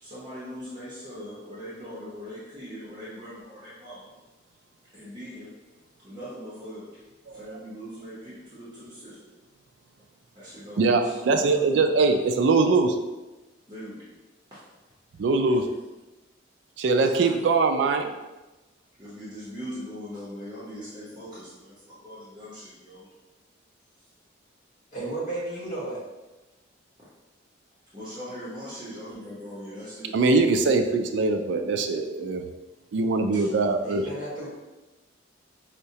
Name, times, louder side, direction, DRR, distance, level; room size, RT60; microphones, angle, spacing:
voice 1, 0.0-4.1 4.9-5.6 6.0-9.4 10.3-12.2 13.7-14.1 14.5-14.6 15.4-15.6 17.1-17.3 19.0-23.1 27.9-30.2 33.3-33.5, equal, 25° right, -10 dB, 0.7 m, -41 dB
voice 2, 7.3-7.6 10.8-13.0 15.2-15.6 16.8-18.1 30.1-32.4 32.9-34.1, right 3 dB, 65° right, 6 dB, 0.3 m, -22 dB
voice 3, 24.9-26.0 33.8-34.5, right 2 dB, 45° left, -7 dB, 1.3 m, -33 dB
4.6 x 2.1 x 2.7 m, 1.1 s
head